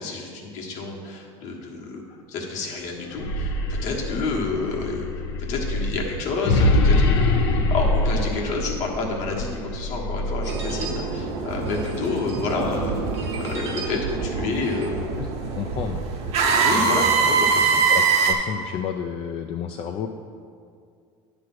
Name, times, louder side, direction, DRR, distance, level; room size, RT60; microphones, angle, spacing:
voice 1, 0.0-2.0 2.3-5.2 5.5-13.0 13.4-15.1 16.6-17.8, left 3 dB, 65° left, -1 dB, 1.5 m, -29 dB
sound 1, 3.0-11.2, left 2 dB, 85° left, 0.8 m, -24 dB
sound 2, 10.4-18.3, right 5 dB, 55° right, 1.1 m, -24 dB
voice 2, 15.2-16.1 16.8-17.1 17.6-20.1, left 8 dB, 50° left, 4 dB, 0.4 m, -32 dB
9.4 x 3.3 x 6.0 m, 2.3 s
supercardioid pair, 95°, 13 cm